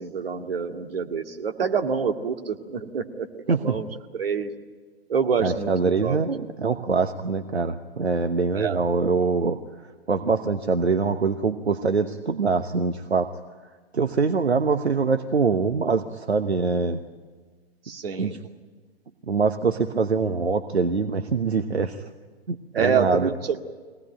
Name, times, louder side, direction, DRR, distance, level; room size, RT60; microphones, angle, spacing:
voice 1, 0.0-3.8 4.1-4.5 5.1-6.2 8.5-8.8 17.9-18.3 22.7-23.6, right 6 dB, 60° right, 5 dB, 2.3 m, -27 dB
voice 2, 3.5-3.8 5.4-9.6 10.1-13.3 13.9-17.0 18.2-18.4 19.3-22.0 22.5-23.3, right 4 dB, 80° right, 8 dB, 1.1 m, -24 dB
24.0 x 18.0 x 9.1 m, 1.5 s
figure-of-eight pair, 120°, 32 cm